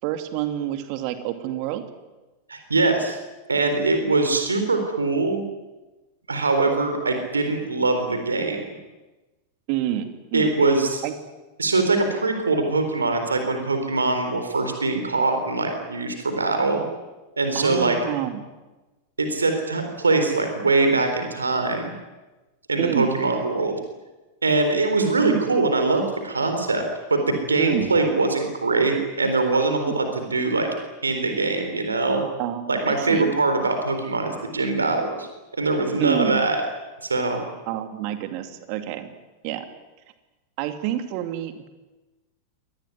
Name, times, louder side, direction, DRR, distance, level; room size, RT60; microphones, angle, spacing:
voice 1, 0.0-1.8 9.7-10.5 11.0-11.2 17.5-18.5 22.8-23.1 25.2-25.6 27.6-28.0 32.4-33.3 36.0-36.4 37.7-39.1 39.4-39.7 40.6-41.7, right 12 dB, 45° right, 8 dB, 2.7 m, -28 dB
voice 2, 2.5-3.2 3.5-5.4 6.3-8.6 10.3-11.0 11.6-16.9 17.4-18.0 19.2-21.9 22.7-23.8 24.4-26.8 27.1-30.7 31.0-32.2 32.7-35.3 35.5-36.6 37.0-37.4, right 3 dB, 75° right, 6 dB, 3.9 m, -22 dB
25.0 x 19.5 x 9.7 m, 1.1 s
figure-of-eight pair, 90°, 0 cm